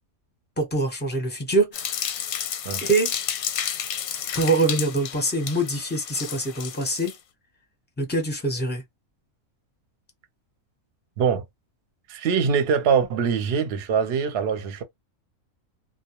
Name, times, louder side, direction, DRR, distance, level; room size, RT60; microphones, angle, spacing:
voice 1, 0.6-2.2 2.8-3.1 4.3-7.1 8.0-8.8, right 2 dB, 10° left, 0.6 m, -24 dB
sound 1, 1.7-7.2, left 9 dB, 90° left, 1.0 m, -31 dB
voice 2, 12.1-14.8, right 6 dB, 55° right, 0.8 m, -23 dB
2.2 x 2.1 x 2.9 m
omnidirectional pair, 1.5 m